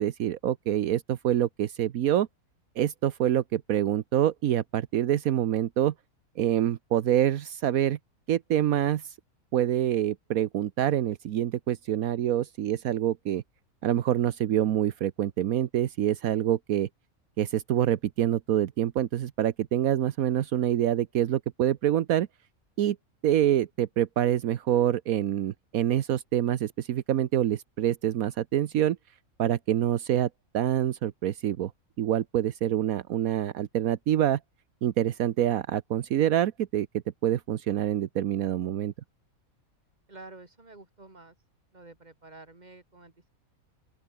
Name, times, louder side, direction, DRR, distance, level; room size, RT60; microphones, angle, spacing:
voice 1, 0.0-2.3 2.8-5.9 6.4-8.0 8.3-9.1 9.5-13.4 13.8-16.9 17.4-22.3 22.8-23.0 23.2-29.0 29.4-30.3 30.5-31.7 32.0-34.4 34.8-36.9 37.2-38.9, right 11 dB, 80° right, 1.2 m, -26 dB
voice 2, 40.1-41.4 41.7-43.3, right 2 dB, 30° right, 2.9 m, -49 dB
open air
omnidirectional pair, 1.5 m